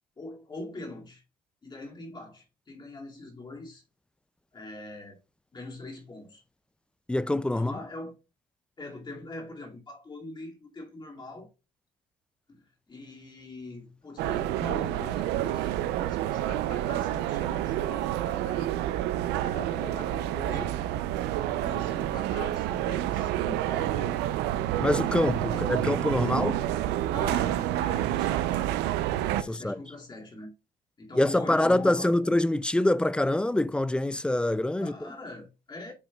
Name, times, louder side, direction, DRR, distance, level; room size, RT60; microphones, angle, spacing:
voice 1, 0.2-1.2 1.6-3.8 4.5-5.2 5.5-6.4 7.5-8.1 8.8-11.5 12.5-18.7 19.4-20.8 21.6-24.3 25.3-25.7 27.1-28.7 29.4-30.5 31.0-32.2 34.8-35.9, left 2 dB, 25° left, 2.3 m, -42 dB
voice 2, 7.1-7.7 24.8-26.6 29.5-29.8 31.2-35.1, left 1 dB, 5° left, 0.3 m, -25 dB
sound 1, 14.2-29.4, right 13 dB, 90° right, 0.5 m, -28 dB
8.9 x 5.0 x 2.3 m
cardioid pair, 110°, 17 cm